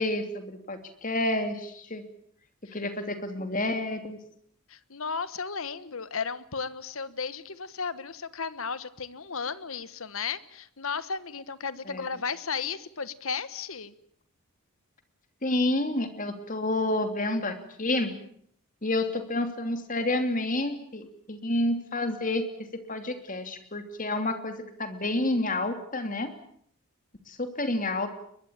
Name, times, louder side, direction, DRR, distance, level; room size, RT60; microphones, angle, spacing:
voice 1, 0.0-2.0 2.7-4.2 11.9-12.1 15.4-18.1 18.8-22.5 22.7-26.3 27.3-28.1, left 2 dB, 35° left, 7 dB, 2.9 m, -29 dB
voice 2, 4.7-13.9, left 5 dB, 70° left, 15 dB, 1.3 m, -34 dB
22.0 x 22.0 x 8.9 m, 0.67 s
head